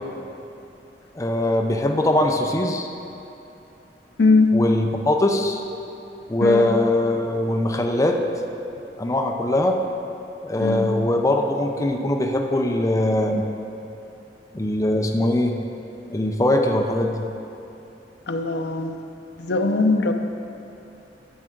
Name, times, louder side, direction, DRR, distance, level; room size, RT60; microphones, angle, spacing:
voice 1, 1.2-2.9 4.5-5.6 6.3-8.2 9.0-9.7 10.4-13.5 14.5-15.6 16.1-17.3, left 1 dB, 20° left, 2 dB, 0.6 m, -21 dB
voice 2, 4.2-4.5 6.4-6.6 10.6-10.9 18.3-19.0 19.4-20.1, left 3 dB, 65° left, 5 dB, 0.6 m, -20 dB
12.0 x 7.3 x 3.8 m, 2.9 s
head